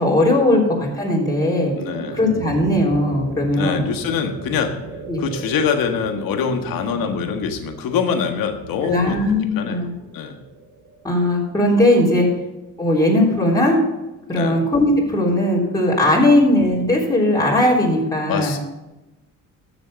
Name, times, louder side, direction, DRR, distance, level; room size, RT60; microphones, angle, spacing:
voice 1, 0.0-1.7 2.1-3.9 5.1-5.2 8.8-9.9 11.0-12.3 12.8-13.8 14.3-18.6, left 1 dB, 10° left, -4 dB, 3.5 m, -18 dB
sound 1, 0.7-11.8, right 3 dB, 60° right, 2.5 m, -36 dB
voice 2, 1.7-2.2 3.5-4.7 5.2-9.2 9.6-9.9 10.1-10.4 12.1-12.3 14.3-14.6 16.2-16.3 18.3-18.6, left 6 dB, 80° left, 5 dB, 1.6 m, -24 dB
13.5 x 7.0 x 5.2 m, 1.0 s
cardioid pair, 100°, 34 cm